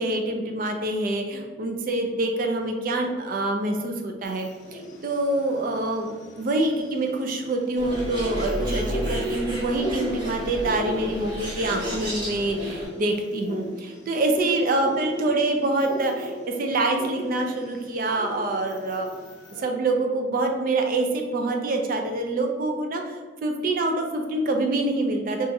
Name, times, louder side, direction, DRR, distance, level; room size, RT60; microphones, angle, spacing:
voice 1, 0.0-19.1 19.6-25.5, right 2 dB, 45° right, 3 dB, 0.3 m, -26 dB
sound 1, 4.2-19.6, equal, 55° left, 0.7 m, -37 dB
Bird, 7.8-12.9, equal, 25° right, 0.8 m, -32 dB
2.5 x 2.4 x 4.0 m, 1.4 s
head